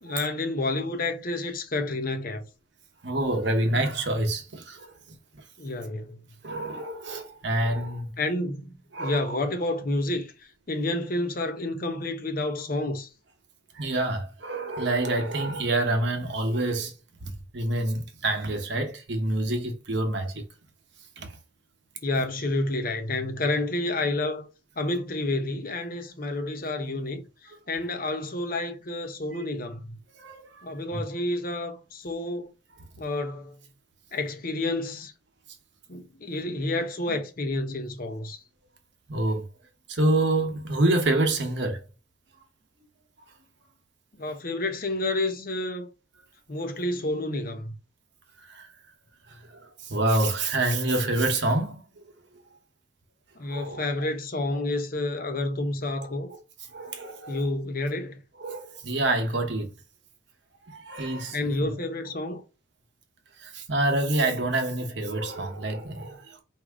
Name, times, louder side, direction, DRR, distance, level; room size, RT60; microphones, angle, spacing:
voice 1, 0.0-2.5 5.6-6.2 8.2-8.7 9.0-10.3 10.7-13.1 22.0-24.5 24.8-27.2 27.7-30.0 30.6-32.5 33.0-33.5 34.1-35.1 35.9-38.4 44.2-45.9 46.5-47.7 53.4-56.3 57.3-58.2 61.3-62.4, left 2 dB, 45° left, 0.7 m, -29 dB
voice 2, 3.0-4.9 5.3-5.4 6.4-8.1 8.9-9.4 13.7-16.9 17.2-20.4 21.2-21.3 30.2-30.6 30.9-31.0 37.1-37.2 39.1-39.5 39.9-41.8 48.5-48.7 49.3-51.8 53.5-54.1 54.5-54.6 56.7-57.4 58.4-59.7 60.7-61.7 63.4-66.4, right 2 dB, 60° right, 1.0 m, -27 dB
4.8 x 2.7 x 3.5 m
head